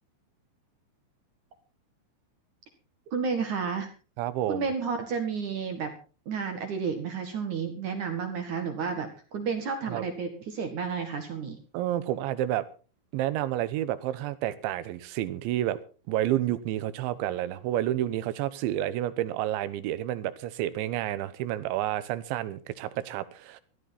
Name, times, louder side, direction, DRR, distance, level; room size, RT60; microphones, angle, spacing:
voice 1, 3.1-3.9 4.5-5.9 6.3-11.6, right 5 dB, 55° right, 6 dB, 2.5 m, -31 dB
voice 2, 4.2-4.7 9.9-10.0 11.7-12.7 13.1-15.8 16.1-23.6, right 13 dB, 80° right, 15 dB, 3.2 m, -30 dB
18.0 x 13.5 x 4.2 m, 0.36 s
omnidirectional pair, 5.5 m